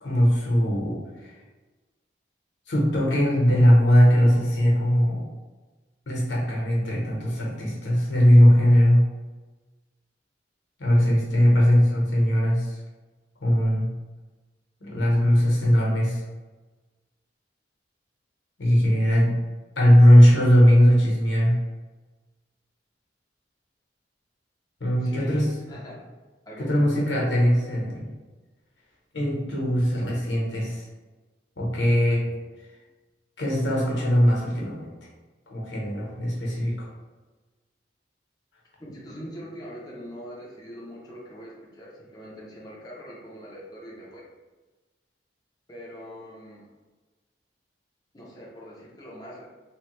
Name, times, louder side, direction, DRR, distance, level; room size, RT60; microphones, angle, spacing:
voice 1, 0.0-1.3 2.7-5.2 6.1-9.0 10.8-12.8 13.4-13.9 14.8-16.2 18.6-19.3 19.8-21.5 24.8-25.4 26.6-28.1 29.1-30.8 31.6-32.2 33.4-34.9 35.5-36.9, equal, 85° left, -4 dB, 0.9 m, -19 dB
voice 2, 25.0-26.0 26.5-27.1 38.8-44.3 45.7-46.7 48.1-49.5, equal, 20° left, -6 dB, 0.5 m, -42 dB
3.1 x 2.1 x 3.0 m, 1.3 s
head